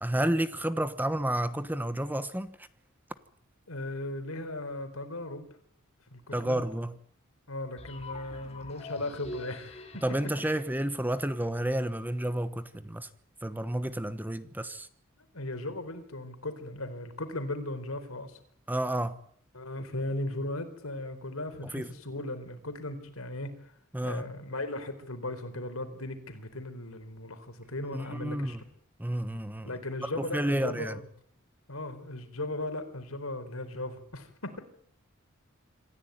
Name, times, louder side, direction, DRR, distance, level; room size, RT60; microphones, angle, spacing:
voice 1, 0.0-2.6 6.3-6.9 10.0-13.1 13.4-14.9 18.7-19.2 21.7-21.9 23.9-24.2 27.9-28.6 29.0-29.7 30.0-31.0, right 1 dB, 10° right, 1.1 m, -31 dB
voice 2, 3.7-5.5 6.1-6.6 7.5-10.0 10.4-10.6 15.3-18.4 19.5-23.7 24.0-28.6 29.6-31.1 31.7-34.6, left 1 dB, 85° left, 4.2 m, -37 dB
sound 1, 7.8-11.7, left 1 dB, 30° left, 3.0 m, -45 dB
27.0 x 14.5 x 9.4 m
head